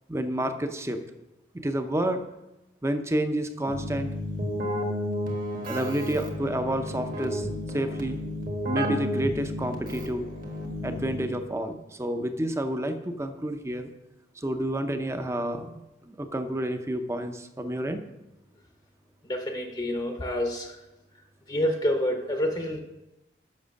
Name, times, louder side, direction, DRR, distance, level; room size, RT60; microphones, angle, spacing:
voice 1, 0.1-1.0 1.5-2.2 2.8-4.1 5.7-7.5 7.7-8.2 8.7-10.3 10.8-13.9 14.4-15.7 16.1-18.0, right 1 dB, 15° right, 7 dB, 0.6 m, -29 dB
Keyboard (musical), 3.7-11.5, equal, 50° right, 1.4 m, -32 dB
voice 2, 19.3-20.8 21.5-22.8, left 1 dB, 25° left, 3 dB, 0.7 m, -28 dB
7.3 x 6.1 x 6.4 m, 0.96 s
head